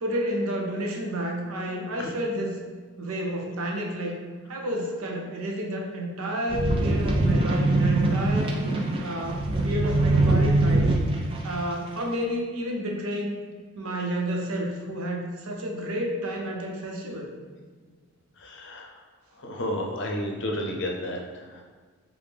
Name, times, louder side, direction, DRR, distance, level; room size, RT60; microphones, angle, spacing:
voice 1, 0.0-2.6 3.0-4.2 4.5-8.6 9.0-10.9 11.4-13.4 13.8-17.3, equal, 80° right, 0 dB, 0.7 m, -30 dB
sound 1, 6.5-11.4 12.0-12.1, right 2 dB, 25° right, 0.4 m, -23 dB
voice 2, 18.4-18.9 19.4-21.6, left 1 dB, 55° left, 0 dB, 0.6 m, -31 dB
4.8 x 2.1 x 3.4 m, 1.5 s
head